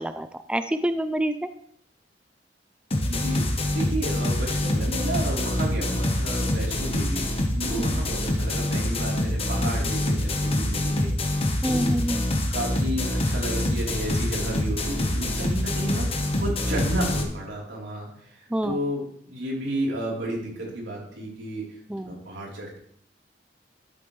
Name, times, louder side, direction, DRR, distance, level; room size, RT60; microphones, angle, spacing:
voice 1, 0.0-1.5 7.9-8.0 11.6-12.2 18.5-18.8 21.9-22.1, right 1 dB, 5° right, 10 dB, 0.3 m, -27 dB
sound 1, 2.9-17.2, left 1 dB, 35° left, 1.2 m, -25 dB
voice 2, 3.1-11.4 11.6-12.0 12.4-21.8 22.0-22.8, right 1 dB, 85° right, -4 dB, 3.9 m, -32 dB
13.0 x 7.6 x 3.3 m, 0.66 s
head